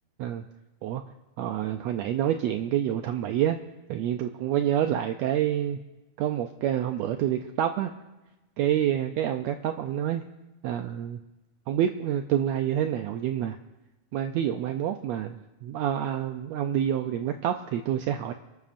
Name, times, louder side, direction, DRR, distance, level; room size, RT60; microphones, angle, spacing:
voice 1, 1.4-3.6 3.9-5.8 6.2-7.9 8.6-10.2 10.6-11.2 11.7-13.6 14.1-15.3 15.6-18.3, right 10 dB, 90° right, 7 dB, 1.5 m, -27 dB
28.5 x 12.5 x 2.6 m, 1.1 s
omnidirectional pair, 3.7 m